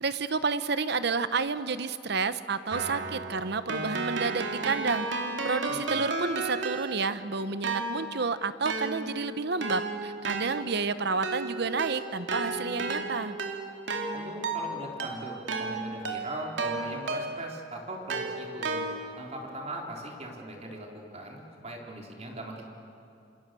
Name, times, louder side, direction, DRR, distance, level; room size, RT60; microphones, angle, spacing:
voice 1, 0.0-5.1 5.4-13.4, right 4 dB, 65° right, 12 dB, 1.0 m, -30 dB
Keyboard (musical), 2.7-7.2 7.6-17.6 18.1-19.3, right 3 dB, 80° right, 2.6 m, -33 dB
voice 2, 5.7-6.0 14.1-18.9 19.1-22.7, right 1 dB, 35° right, 0 dB, 3.9 m, -40 dB
28.0 x 27.0 x 7.7 m, 2.7 s
head